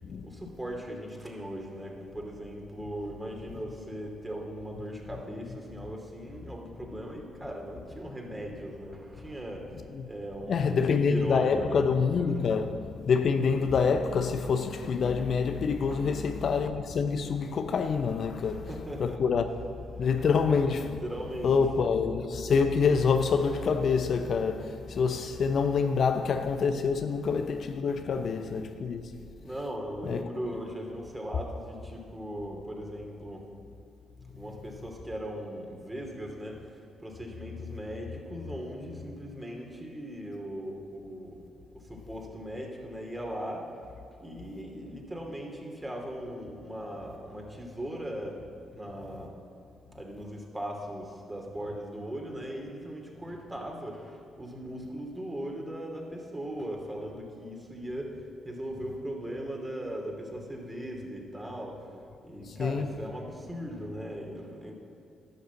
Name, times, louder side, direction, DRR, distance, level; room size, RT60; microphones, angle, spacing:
voice 1, 0.2-11.8 15.9-16.2 18.4-19.2 19.9-20.1 20.8-21.6 29.4-33.5 34.3-36.6 37.0-41.4 41.7-43.7 44.2-48.4 48.7-49.4 49.9-58.2 58.4-61.8 62.2-64.7, equal, 15° right, 2.7 m, -39 dB
voice 2, 10.5-18.7 19.0-19.5 20.0-21.0 21.4-29.1 30.0-30.3 62.5-63.0, left 5 dB, 60° left, 0.6 m, -26 dB
11.5 x 6.6 x 7.0 m
hypercardioid pair, 45°, 0 cm